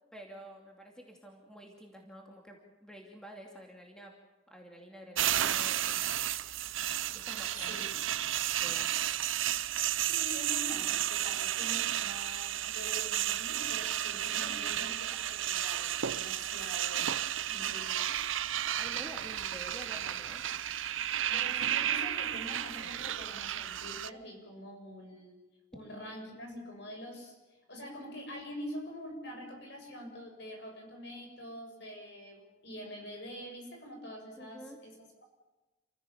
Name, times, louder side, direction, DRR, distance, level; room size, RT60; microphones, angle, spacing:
voice 1, 0.1-4.1 4.5-6.0 7.1-8.1 8.6-8.9 14.1-14.9 18.8-20.4 34.4-34.8, equal, 5° left, 0 dB, 2.6 m, -49 dB
sound 1, 5.2-24.1, right 11 dB, 80° right, 0.7 m, -33 dB
voice 2, 10.0-17.1 17.5-18.1 21.3-25.4 25.7-35.2, equal, 60° left, 3 dB, 6.9 m, -45 dB
28.5 x 16.0 x 7.2 m, 1.1 s
head